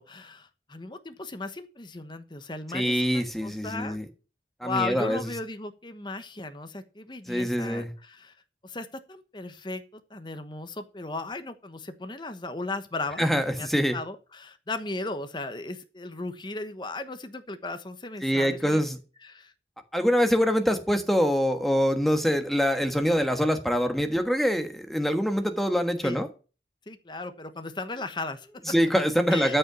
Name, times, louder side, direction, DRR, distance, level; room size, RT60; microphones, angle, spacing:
voice 1, 0.0-4.0 4.6-8.3 8.6-18.8 19.2-19.5 26.0-26.2 26.9-28.6 29.3-29.6, left 3 dB, 25° left, 9 dB, 1.1 m, -36 dB
voice 2, 2.7-4.0 4.6-5.2 7.3-7.9 13.2-14.0 18.2-19.0 19.9-26.3 28.7-29.6, equal, ahead, 7 dB, 1.4 m, -24 dB
13.0 x 5.7 x 6.9 m, 0.34 s
head